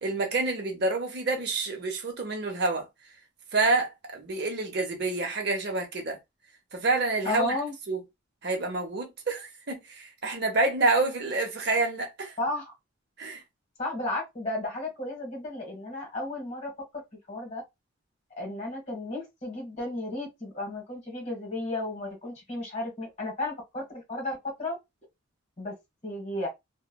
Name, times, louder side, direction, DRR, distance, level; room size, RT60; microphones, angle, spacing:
voice 1, 0.0-2.9 3.5-6.2 6.7-7.6 7.9-8.0 8.4-12.3 13.2-13.4, right 3 dB, 50° right, 0.7 m, -28 dB
voice 2, 7.2-7.7 12.4-12.7 13.8-16.7 17.3-17.6 18.4-24.8 25.6-25.7 26.0-26.5, left 2 dB, 35° left, 1.3 m, -33 dB
3.0 x 2.2 x 2.2 m
head